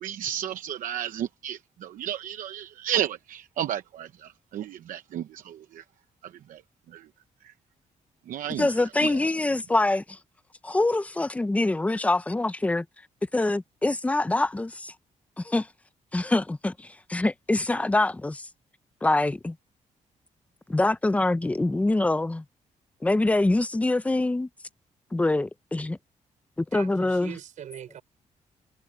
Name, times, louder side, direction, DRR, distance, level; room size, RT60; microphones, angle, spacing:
voice 1, 0.0-5.8 6.5-6.6 6.9-7.0 8.3-8.7 9.0-9.1, right 10 dB, 85° right, 0.8 m, -32 dB
voice 2, 8.6-10.2 10.6-12.9 13.3-14.9 15.4-15.7 16.1-18.5 19.0-19.6 20.7-22.4 23.0-24.5 25.1-26.0 26.6-27.3, left 2 dB, 10° left, 0.6 m, -25 dB
voice 3, 26.7-28.0, right 10 dB, 70° right, 5.1 m, -41 dB
wide cardioid pair, 160°, 13 cm